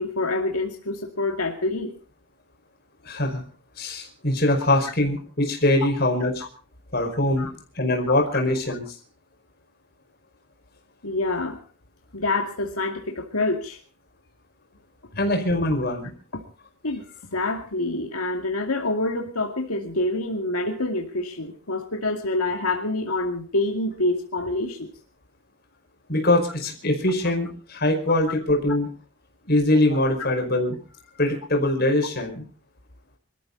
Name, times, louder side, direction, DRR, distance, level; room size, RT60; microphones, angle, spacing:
voice 1, 0.0-1.9 7.4-7.5 11.0-11.6 12.1-13.8 16.3-16.4 16.8-17.1 17.3-24.9, left 2 dB, 90° left, 3 dB, 2.4 m, -26 dB
voice 2, 3.0-3.4 3.8-6.4 6.9-7.5 7.7-8.8 15.2-16.1 26.1-28.9 29.4-30.8 31.2-32.4, left 1 dB, 45° left, 3 dB, 5.1 m, -22 dB
25.5 x 14.0 x 4.0 m, 0.37 s
head